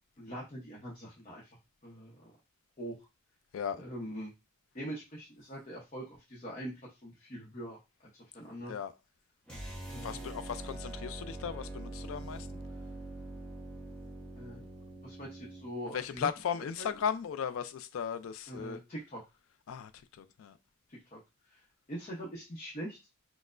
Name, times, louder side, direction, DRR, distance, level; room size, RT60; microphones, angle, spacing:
voice 1, 0.2-1.5 1.8-2.3 2.8-3.0 3.7-4.3 4.7-6.7 7.0-7.8 8.1-8.7 9.9-10.4 14.4-14.6 15.0-16.3 16.8-16.9 18.5-19.2 20.9-21.2 21.5-21.6 21.9-23.0, equal, 35° left, 0.7 m, -43 dB
sound 1, 9.5-15.7, right 1 dB, 5° left, 0.8 m, -43 dB
voice 2, 10.0-12.5 15.8-18.8 19.7-20.6, left 7 dB, 75° left, 0.3 m, -36 dB
4.2 x 2.0 x 2.4 m
head